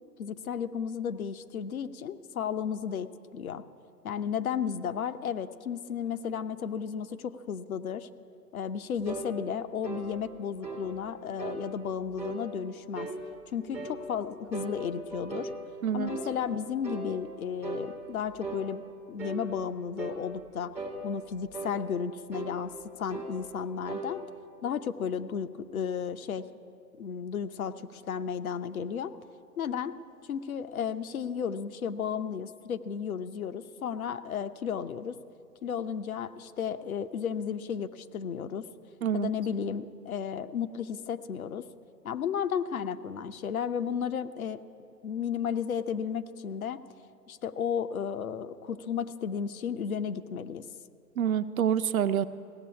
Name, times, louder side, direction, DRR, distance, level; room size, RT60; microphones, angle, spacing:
voice 1, 0.2-3.6 4.0-8.1 8.5-13.1 13.5-15.5 15.9-18.8 19.1-20.8 21.0-24.2 24.6-26.5 27.0-29.1 29.6-29.9 30.3-35.2 35.6-38.7 39.1-41.7 42.0-44.6 45.0-46.8 47.3-50.6, left 7 dB, 60° left, 10 dB, 0.8 m, -33 dB
sound 1, 9.1-9.3 9.8-10.1 10.6-10.9 11.4-11.6 12.2-12.4 13.0-13.2 13.7-14.0 14.5-15.5 16.1-16.3 16.8-17.1 17.6-17.9 18.4-18.7 19.2-19.4 20.0-20.2 20.8-21.0 21.5-21.8 22.3-22.6 23.1-23.3 23.9-24.1, right 3 dB, ahead, 0.5 m, -37 dB
voice 2, 51.2-52.2, right 9 dB, 60° right, 12 dB, 0.6 m, -27 dB
17.0 x 6.9 x 9.5 m, 2.4 s
figure-of-eight pair, 130°, 49 cm